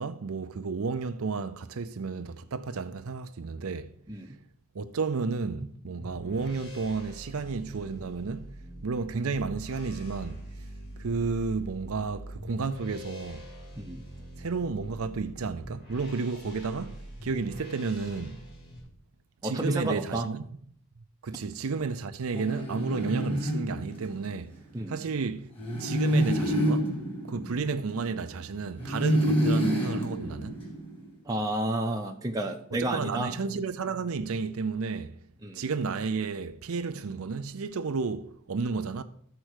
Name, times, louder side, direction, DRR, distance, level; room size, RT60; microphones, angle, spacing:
voice 1, 0.0-3.9 4.7-8.6 8.8-10.4 11.0-13.5 14.4-18.4 19.4-20.5 21.2-24.5 24.9-25.5 25.8-26.9 27.3-30.6 32.8-35.1 35.5-39.0, right 4 dB, 70° right, 0.5 m, -32 dB
sound 1, 6.0-18.8, equal, 45° left, 4.0 m, -43 dB
voice 2, 19.4-20.3 24.7-25.0 31.3-33.3 35.4-35.6, right 1 dB, 15° right, 0.6 m, -31 dB
sound 2, 22.3-24.4 25.6-28.3 28.8-31.0, equal, 25° left, 2.0 m, -28 dB
13.0 x 4.5 x 6.4 m
head